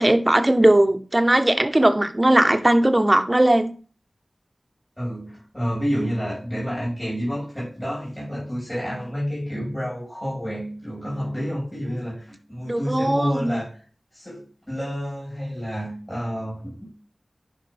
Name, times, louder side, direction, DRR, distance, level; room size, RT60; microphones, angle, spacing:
voice 1, 0.0-3.7 12.7-13.6, right 1 dB, 25° right, 8 dB, 1.0 m, -18 dB
voice 2, 5.0-13.7 14.1-16.9, equal, 15° left, -5 dB, 4.4 m, -29 dB
10.5 x 5.4 x 3.4 m, 0.41 s
wide cardioid pair, 65°, 0 cm